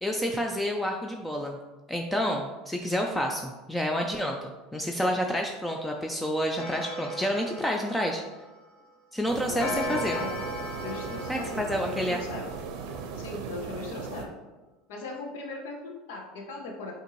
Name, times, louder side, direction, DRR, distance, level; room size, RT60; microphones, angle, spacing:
voice 1, 0.0-1.6 1.9-8.2 9.1-10.2 11.3-12.2, equal, 5° left, 2 dB, 0.3 m, -29 dB
Clock, 6.6-8.8 9.6-13.0, left 1 dB, 45° left, 1.4 m, -37 dB
sound 1, 9.3-14.3, right 5 dB, 65° right, 0.5 m, -38 dB
voice 2, 9.5-10.3 10.8-12.5 13.2-14.3 14.9-16.9, left 3 dB, 80° left, 1 dB, 0.8 m, -38 dB
5.4 x 2.6 x 3.0 m, 1.2 s
supercardioid pair, 110°, 0 cm